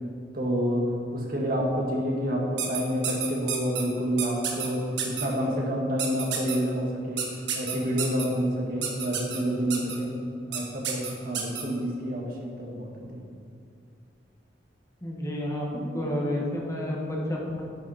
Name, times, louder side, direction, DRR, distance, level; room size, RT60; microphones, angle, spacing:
voice 1, 0.3-7.2 7.5-10.1 10.5-13.3, equal, 55° right, -2 dB, 2.0 m, -28 dB
sound 1, 2.6-3.8 4.2-4.7 5.0-5.2 6.0-6.6 7.2-8.2 8.8-9.4 9.7-9.9 10.5-10.6 10.8-11.6, right 8 dB, 90° right, 1.6 m, -30 dB
voice 2, 15.0-17.6, left 1 dB, 15° left, -3 dB, 1.8 m, -30 dB
10.5 x 8.9 x 4.3 m, 2.4 s
head